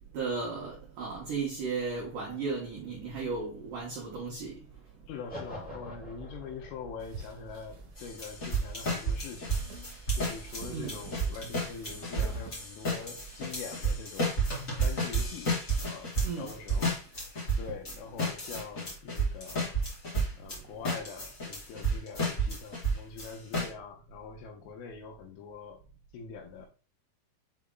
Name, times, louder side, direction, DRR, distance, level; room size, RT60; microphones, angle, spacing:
voice 1, 0.1-4.6 10.7-11.0 16.2-16.5, right 4 dB, 80° right, 1.9 m, -35 dB
voice 2, 5.1-9.6 10.2-14.5 14.8-15.5 15.8-17.2 17.6-19.8 20.4-25.8 26.1-26.7, left 5 dB, 85° left, 3.3 m, -44 dB
sound 1, 5.3-11.4, right 1 dB, 5° left, 0.6 m, -48 dB
sound 2, 7.0-17.7, right 3 dB, 55° right, 2.6 m, -50 dB
sound 3, 8.0-20.6 20.8-23.7, right 2 dB, 40° left, 1.2 m, -31 dB
7.2 x 3.5 x 3.8 m
omnidirectional pair, 5.7 m